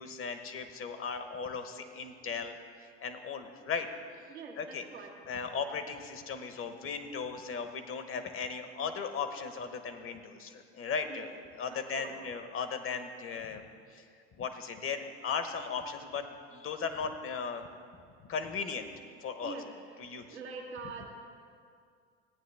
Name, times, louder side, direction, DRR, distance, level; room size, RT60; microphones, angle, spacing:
voice 1, 0.0-3.9 4.6-4.8 5.3-11.3 11.6-13.6 13.9-14.0 14.4-17.6 18.3-18.9 19.2-19.6 20.0-20.3, left 5 dB, 40° left, 8 dB, 1.0 m, -37 dB
voice 2, 4.3-5.1 11.1-11.3 11.7-12.2 19.4-19.7 20.0-21.0, right 4 dB, 90° right, -2 dB, 1.7 m, -44 dB
15.0 x 9.1 x 3.4 m, 2.2 s
hypercardioid pair, 70°, 33 cm